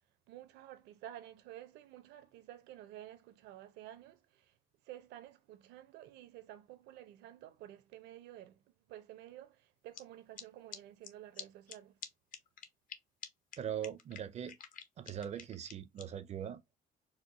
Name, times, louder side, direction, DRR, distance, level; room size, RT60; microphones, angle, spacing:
voice 1, 0.3-4.6 4.8-12.0, right 13 dB, 85° right, 0.7 m, -52 dB
sound 1, 9.9-10.0 10.4-10.5 10.7-10.8 11.0-11.1 11.4-11.5 11.7-11.8 12.0-12.1 12.3-13.0 13.2-13.3 13.5-13.6 13.8-16.0, left 7 dB, 55° left, 0.7 m, -46 dB
voice 2, 13.6-14.6 15.0-16.8, right 9 dB, 40° right, 0.4 m, -41 dB
4.4 x 2.1 x 2.5 m
cardioid pair, 110°, 17 cm